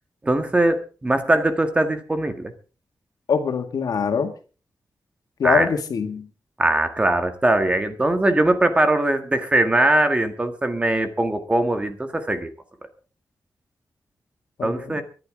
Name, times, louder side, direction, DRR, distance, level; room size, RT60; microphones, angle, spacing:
voice 1, 0.2-2.5 5.4-5.7 6.6-12.5 14.6-15.0, right 1 dB, 20° right, 7 dB, 1.7 m, -21 dB
voice 2, 3.3-4.3 5.4-6.3 14.6-15.0, left 6 dB, 90° left, 6 dB, 2.1 m, -23 dB
24.5 x 11.0 x 3.7 m, 0.37 s
wide cardioid pair, 160°, 6 cm